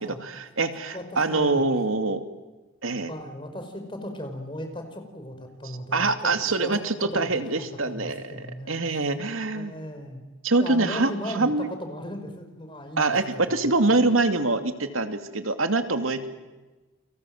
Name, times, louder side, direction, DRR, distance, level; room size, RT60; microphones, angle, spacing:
voice 1, 0.2-2.2 2.8-3.1 5.9-9.7 10.4-11.7 13.0-16.3, right 3 dB, 90° right, 8 dB, 2.6 m, -24 dB
voice 2, 0.9-1.6 3.1-8.8 9.5-10.2 10.6-13.2 13.5-14.0, equal, 25° left, 5 dB, 5.2 m, -37 dB
30.0 x 25.0 x 7.8 m, 1.1 s
head